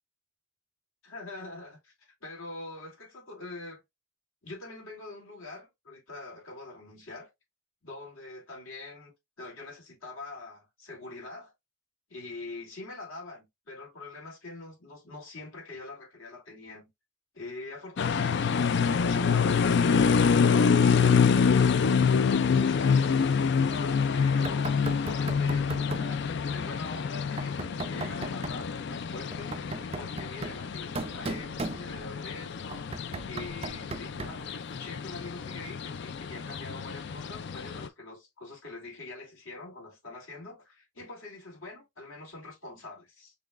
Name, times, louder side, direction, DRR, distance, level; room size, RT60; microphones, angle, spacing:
voice 1, 1.0-3.8 4.4-7.3 7.8-11.5 12.1-16.9 17.3-21.5 22.4-43.3, left 2 dB, 80° left, 2.7 m, -44 dB
sound 1, 18.0-37.9, left 6 dB, 55° left, 0.4 m, -26 dB
Knock, 24.4-26.2 27.4-28.6 29.3-32.2 32.7-34.5, right 3 dB, 30° right, 0.4 m, -38 dB
5.9 x 3.2 x 2.4 m
head